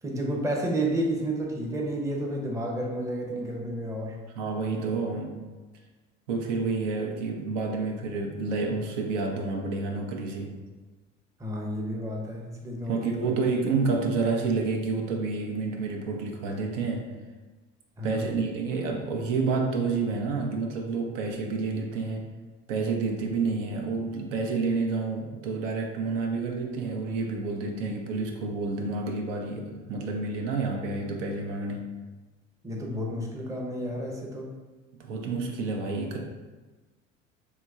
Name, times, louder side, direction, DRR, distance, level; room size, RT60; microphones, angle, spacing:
voice 1, 0.0-4.2 11.4-13.4 18.0-18.3 32.6-34.5, right 1 dB, 10° right, -1 dB, 0.6 m, -31 dB
voice 2, 4.4-5.4 6.3-10.5 12.9-17.1 18.0-22.3 22.7-31.9 34.9-36.2, right 4 dB, 75° right, 1 dB, 0.6 m, -29 dB
3.1 x 2.2 x 3.5 m, 1.3 s
hypercardioid pair, 70°, 37 cm